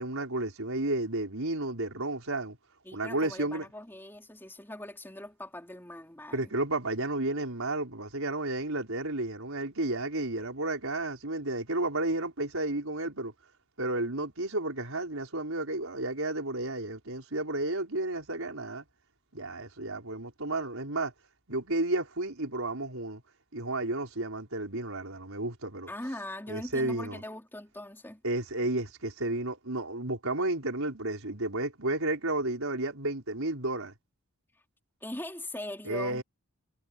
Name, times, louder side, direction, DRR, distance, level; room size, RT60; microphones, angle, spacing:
voice 1, 0.0-2.6 2.9-3.7 6.3-13.3 13.8-18.8 19.3-21.1 21.5-23.2 23.5-25.9 26.5-27.2 28.2-33.9 35.8-36.2, right 2 dB, 75° right, 4.9 m, -32 dB
voice 2, 2.8-6.5 25.9-28.2 35.0-36.2, left 1 dB, 10° left, 3.6 m, -41 dB
head